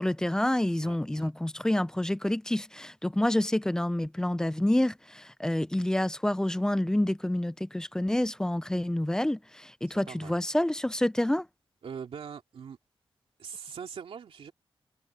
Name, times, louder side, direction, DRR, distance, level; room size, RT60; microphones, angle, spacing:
voice 1, 0.0-11.5, left 1 dB, 5° left, 0.4 m, -28 dB
voice 2, 0.8-1.3 9.9-10.4 11.8-12.8 13.4-14.5, right 7 dB, 75° right, 2.6 m, -42 dB
wide cardioid pair, 180°, 10 cm